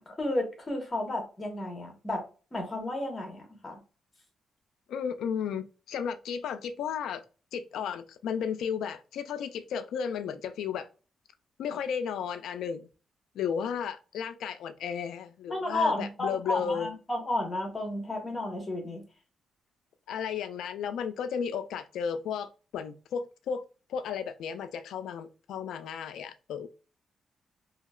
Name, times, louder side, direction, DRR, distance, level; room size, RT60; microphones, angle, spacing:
voice 1, 0.0-2.2 2.5-3.8 15.5-19.0, left 2 dB, 30° left, 1.3 m, -32 dB
voice 2, 4.9-7.2 7.5-10.9 11.6-12.9 13.3-16.9 20.1-23.6 23.9-26.7, left 7 dB, 90° left, 0.3 m, -34 dB
2.8 x 2.8 x 2.3 m
cardioid pair, 95°, 0 cm